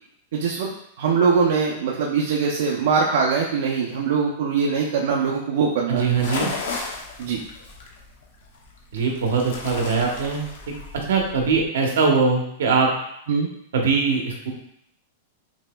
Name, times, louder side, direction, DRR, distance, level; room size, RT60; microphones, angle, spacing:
voice 1, 0.3-0.7 1.0-6.2 7.2-7.4 13.3-13.5, right 5 dB, 60° right, -3 dB, 0.5 m, -22 dB
sound 1, 5.9-11.7, left 3 dB, 65° left, 0.8 m, -35 dB
voice 2, 5.9-6.5 8.9-10.5 11.1-12.9 13.7-14.5, right 5 dB, 80° right, 1 dB, 0.9 m, -21 dB
5.4 x 2.8 x 2.2 m, 0.74 s
supercardioid pair, 175°, 0 cm